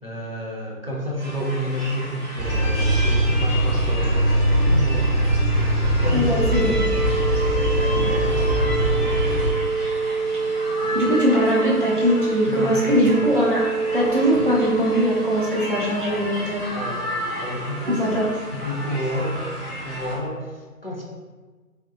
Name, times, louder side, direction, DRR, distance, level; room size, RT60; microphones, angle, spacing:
voice 1, 0.0-5.1 5.8-7.2 7.8-9.2 10.8-11.0 12.5-13.2 16.1-16.3 16.7-17.0 17.4-18.1 18.5-21.0, equal, 40° left, -4 dB, 0.5 m, -30 dB
sound 1, 1.2-20.1, equal, 15° left, 1.0 m, -33 dB
sound 2, 2.4-9.5, right 1 dB, 80° right, 0.7 m, -21 dB
voice 2, 6.1-6.7 10.9-13.6 13.9-16.7 17.9-18.3, equal, 35° right, -7 dB, 0.6 m, -21 dB
sound 3, 6.3-15.4, right 4 dB, 70° left, 0.9 m, -25 dB
3.5 x 2.6 x 2.5 m, 1.4 s
figure-of-eight pair, 160°, 46 cm